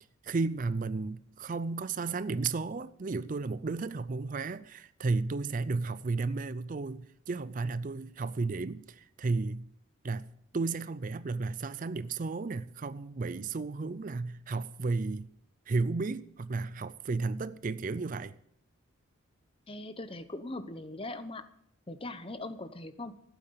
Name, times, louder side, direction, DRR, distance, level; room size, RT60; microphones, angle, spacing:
voice 1, 0.2-9.6 10.0-10.2 10.5-15.3 15.7-18.3, right 3 dB, 40° right, 0.4 m, -33 dB
voice 2, 19.7-21.5 21.9-23.1, left 2 dB, 25° left, 0.9 m, -40 dB
16.0 x 9.1 x 6.8 m
head